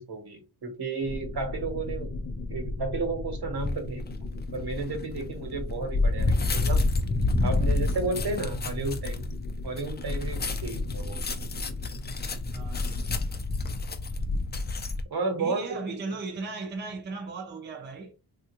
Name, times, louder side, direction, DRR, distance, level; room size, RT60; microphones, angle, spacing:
voice 1, 0.0-2.1 2.5-4.0 4.5-6.8 7.4-9.1 9.6-11.2 15.1-16.0, right 3 dB, 70° right, 1.1 m, -32 dB
Helicopter synth, 1.0-13.3, left 2 dB, 80° left, 0.8 m, -37 dB
sound 1, 3.6-3.9 4.5-15.0, left 2 dB, 25° left, 0.4 m, -29 dB
voice 2, 12.5-13.1 15.4-18.2, right 3 dB, 25° right, 0.5 m, -37 dB
3.4 x 2.4 x 2.9 m
wide cardioid pair, 155°, 40 cm